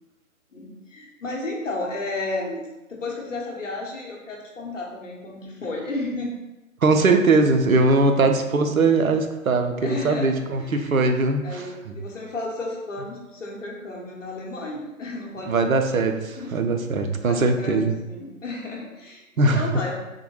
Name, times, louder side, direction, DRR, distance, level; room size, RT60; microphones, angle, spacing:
voice 1, 0.5-6.4 7.7-8.0 9.8-10.3 10.6-11.0 11.4-15.5 15.9-16.0 16.4-17.0 17.2-19.9, left 2 dB, 65° left, -2 dB, 0.9 m, -33 dB
voice 2, 6.8-11.4 11.9-12.0 15.5-16.1 16.5-17.9 19.4-19.6, right 3 dB, 85° right, 5 dB, 0.5 m, -20 dB
3.6 x 2.1 x 3.1 m, 1.0 s
figure-of-eight pair, 135°, 40 cm